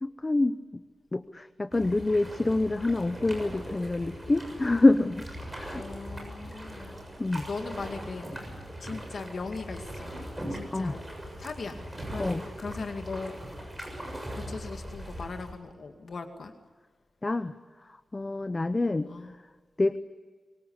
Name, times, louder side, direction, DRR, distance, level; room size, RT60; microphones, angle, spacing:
voice 1, 0.0-0.8 1.1-5.3 5.5-5.8 7.2-7.4 10.7-10.9 12.2-12.4 17.2-17.5 18.1-19.1 19.8-20.0, left 2 dB, 20° left, 11 dB, 0.7 m, -26 dB
sound 1, 1.7-15.5, equal, 10° right, 6.9 m, -40 dB
voice 2, 5.7-7.0 7.4-11.1 11.4-13.3 14.3-16.5 19.1-19.3, left 4 dB, 55° left, 5 dB, 2.2 m, -39 dB
25.0 x 23.5 x 8.2 m, 1.5 s
wide cardioid pair, 165°, 0 cm